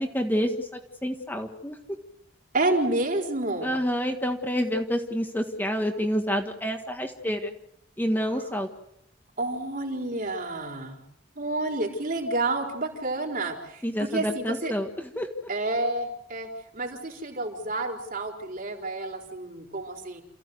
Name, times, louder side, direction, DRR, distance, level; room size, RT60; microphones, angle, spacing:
voice 1, 0.0-1.8 3.6-7.5 8.0-8.7 13.8-15.3, equal, 10° left, 4 dB, 1.6 m, -28 dB
voice 2, 2.5-3.7 9.4-11.0 11.4-14.7 15.5-16.5 16.7-20.2, right 2 dB, 50° right, 2 dB, 4.2 m, -29 dB
28.5 x 15.5 x 8.0 m, 0.77 s
head